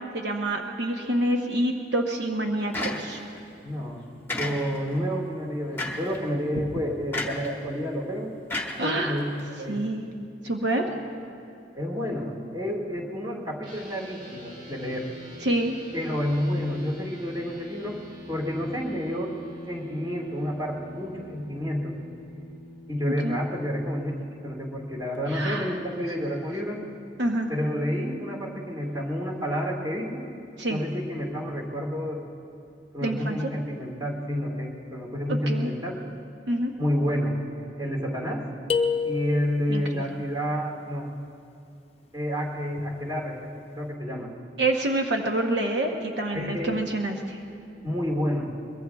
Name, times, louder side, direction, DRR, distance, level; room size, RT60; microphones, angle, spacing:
voice 1, 0.1-3.2 8.8-9.1 9.7-10.0 10.4-10.9 15.4-15.8 23.2-23.4 25.3-25.7 27.2-27.5 30.6-30.8 33.0-33.4 35.3-35.7 36.5-36.7 39.7-40.0 44.6-47.4, right 1 dB, 65° right, 2 dB, 0.9 m, -27 dB
sound 1, 2.7-3.4 4.3-5.0 5.8-6.2 7.1-7.5 8.5-9.4, left 2 dB, 10° left, 1.1 m, -32 dB
voice 2, 3.6-8.3 8.8-9.3 9.6-9.8 11.7-15.1 15.9-18.0 18.3-19.4 19.7-21.9 22.9-26.8 27.5-30.3 30.7-32.2 32.9-36.0 36.8-37.4 37.8-38.5 39.0-41.1 42.1-44.3 46.3-46.8 47.8-48.5, equal, 20° right, -1 dB, 1.9 m, -29 dB
sound 2, 13.6-23.0, equal, 45° right, 1.9 m, -44 dB
sound 3, 38.7-39.8, left 5 dB, 30° left, 0.6 m, -27 dB
23.0 x 22.0 x 2.3 m, 2.5 s
head